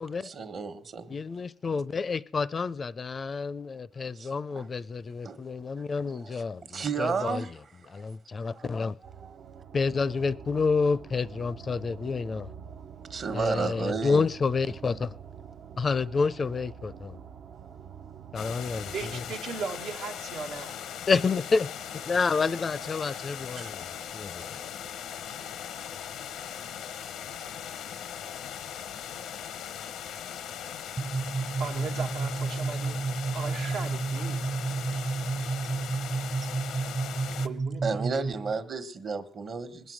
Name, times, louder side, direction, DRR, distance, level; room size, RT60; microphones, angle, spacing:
voice 1, 0.2-1.1 4.1-4.7 5.2-5.4 6.1-7.5 7.8-8.0 8.5-8.7 9.2-9.4 13.1-14.3 23.6-23.7 34.9-35.0 37.8-39.9, right 4 dB, 50° right, 1.2 m, -33 dB
voice 2, 1.1-7.4 7.9-8.9 9.7-12.5 13.3-15.1 15.8-17.2 18.3-19.2 21.1-21.7 22.1-24.6, left 4 dB, 40° left, 0.4 m, -29 dB
sound 1, 9.0-19.2, right 7 dB, 70° right, 0.6 m, -46 dB
sound 2, 18.4-37.5, left 9 dB, 85° left, 0.7 m, -39 dB
voice 3, 18.9-20.8 31.6-33.0 33.3-34.6 37.4-38.1, right 5 dB, 90° right, 1.3 m, -37 dB
sound 3, 31.0-38.5, right 4 dB, 25° right, 0.5 m, -31 dB
20.0 x 7.3 x 6.3 m
cardioid pair, 90°, 0 cm